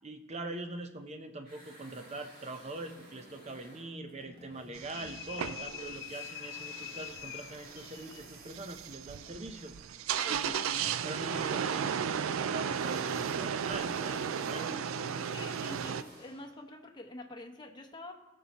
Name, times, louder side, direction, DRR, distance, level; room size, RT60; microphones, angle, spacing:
voice 1, 0.0-9.7 10.3-14.7, right 2 dB, 35° right, 6 dB, 0.8 m, -43 dB
sound 1, 1.4-5.5 5.8-16.6, right 1 dB, 50° right, 2.5 m, -55 dB
sound 2, 4.7-16.0, right 7 dB, 90° right, 0.4 m, -35 dB
sound 3, 4.9-8.3, left 14 dB, 60° left, 0.3 m, -44 dB
voice 2, 10.2-10.6 14.7-18.1, left 2 dB, 20° left, 2 dB, 0.9 m, -46 dB
19.0 x 6.9 x 3.0 m, 1.1 s
head